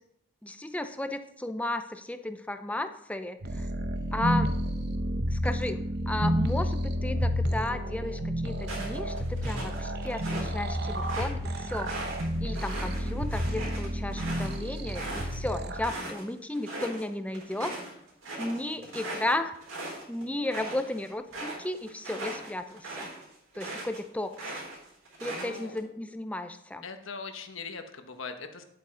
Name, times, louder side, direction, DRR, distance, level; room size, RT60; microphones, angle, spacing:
voice 1, 0.4-3.7 4.1-4.5 5.3-11.9 12.4-17.7 18.4-19.5 20.1-23.1 23.5-24.3 25.2-26.9, left 1 dB, 5° left, 9 dB, 0.5 m, -34 dB
sound 1, 3.4-15.9, equal, 50° right, 0.8 m, -30 dB
sound 2, 8.6-10.5 10.9-16.2 16.5-17.0 17.3-24.0 24.3-25.8, right 2 dB, 80° right, 4.1 m, -39 dB
voice 2, 25.2-25.9 26.8-28.6, left 4 dB, 70° left, 7 dB, 1.2 m, -41 dB
10.5 x 8.3 x 3.8 m, 0.77 s
head